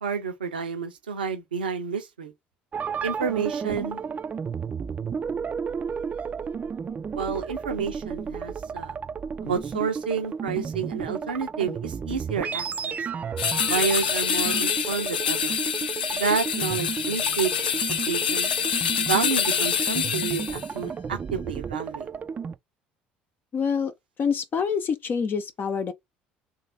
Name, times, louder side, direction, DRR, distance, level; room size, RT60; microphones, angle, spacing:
voice 1, 0.0-2.3 3.0-4.0 7.1-8.9 9.4-13.0 13.6-15.6 16.1-17.5 18.1-18.5 19.0-22.1, right 6 dB, 90° right, 0.8 m, -29 dB
sound 1, 2.7-22.6, right 6 dB, 30° right, 0.5 m, -33 dB
sound 2, 13.4-20.7, left 8 dB, 85° left, 0.4 m, -26 dB
voice 2, 23.5-23.9 24.2-25.9, left 6 dB, 45° left, 0.8 m, -26 dB
3.3 x 2.7 x 4.2 m
hypercardioid pair, 60°, 5 cm